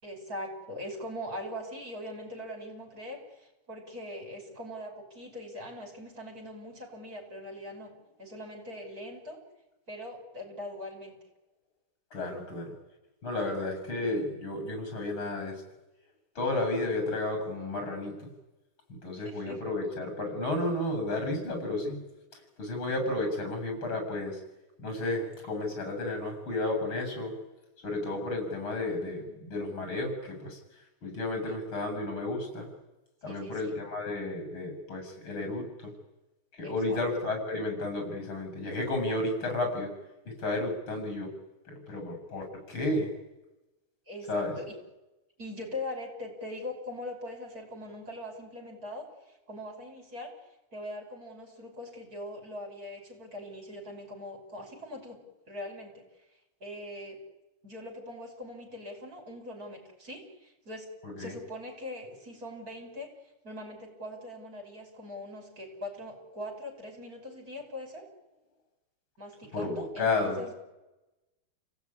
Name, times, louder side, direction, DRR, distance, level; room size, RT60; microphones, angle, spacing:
voice 1, 0.0-7.9 8.2-9.4 9.9-11.2 13.4-13.6 19.2-19.6 31.4-31.6 33.3-33.8 36.6-37.1 44.1-44.7 45.4-50.3 50.7-56.0 56.6-57.2 57.6-60.9 61.2-63.1 63.4-68.1 69.2-70.5, left 1 dB, 40° right, 1 dB, 6.2 m, -41 dB
voice 2, 12.1-12.7 13.2-15.5 16.3-18.3 19.0-22.0 22.6-24.4 24.8-27.3 27.8-30.6 31.0-32.7 33.2-35.9 36.6-39.9 40.4-41.3 41.7-43.1 44.3-44.5 61.0-61.3 69.5-70.4, left 2 dB, 70° left, 4 dB, 8.4 m, -32 dB
30.0 x 18.0 x 9.9 m, 1.0 s
omnidirectional pair, 2.3 m